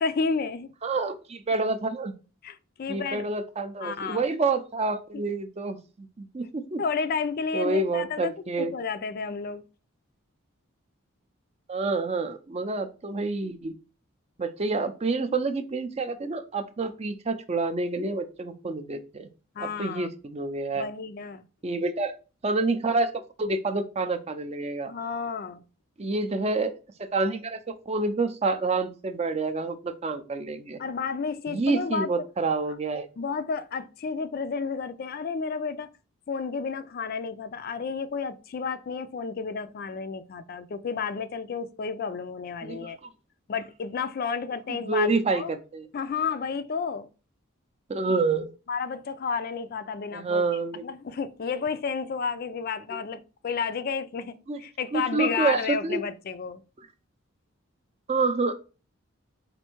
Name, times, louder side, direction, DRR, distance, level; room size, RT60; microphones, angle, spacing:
voice 1, 0.0-0.7 2.4-3.2 3.8-4.2 6.8-8.3 8.6-9.6 19.6-20.1 20.7-21.4 24.9-25.6 30.8-32.1 33.2-35.9 36.3-43.0 43.5-45.5 45.9-47.1 48.7-50.4 50.7-56.6, left 5 dB, 45° left, 0.4 m, -31 dB
voice 2, 0.8-2.1 2.9-6.8 7.5-8.7 11.7-13.7 14.4-19.3 19.6-20.9 21.6-22.1 22.4-23.1 23.4-24.9 26.0-26.7 27.0-30.8 31.5-33.1 42.6-42.9 44.7-45.9 47.9-48.5 50.1-50.8 54.5-54.6 54.9-56.0 58.1-58.5, right 3 dB, 30° right, 0.5 m, -28 dB
4.4 x 2.6 x 4.4 m
head